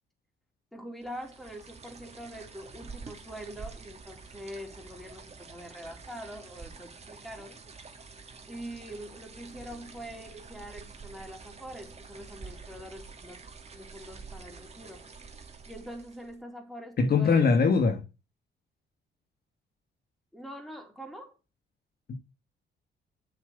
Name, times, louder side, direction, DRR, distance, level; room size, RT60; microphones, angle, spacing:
voice 1, 0.7-7.6 8.5-13.4 13.7-15.1 15.7-17.4 20.3-21.3, equal, ahead, 4.0 m, -44 dB
sound 1, 1.0-16.4, right 4 dB, 30° right, 2.3 m, -48 dB
voice 2, 17.0-18.0 22.1-22.2, left 5 dB, 50° left, 1.6 m, -22 dB
7.6 x 7.5 x 8.1 m
cardioid pair, 90°, 20 cm